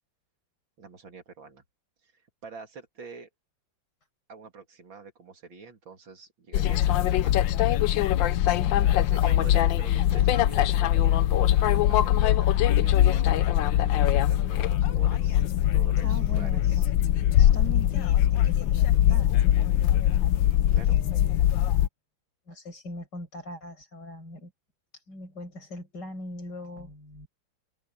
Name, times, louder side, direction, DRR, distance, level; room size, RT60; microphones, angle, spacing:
voice 1, 0.8-1.6 2.0-3.3 4.3-7.4 7.9-8.0 9.1-11.1 11.4-16.9 20.7-21.0, right 5 dB, 75° right, 3.6 m, -46 dB
sound 1, 6.5-21.9, left 12 dB, 75° left, 1.4 m, -22 dB
voice 2, 8.5-8.8 16.0-16.8 17.3-20.0 20.8-21.5 22.5-24.5 25.1-27.3, left 1 dB, 60° left, 6.3 m, -41 dB
omnidirectional pair, 2.1 m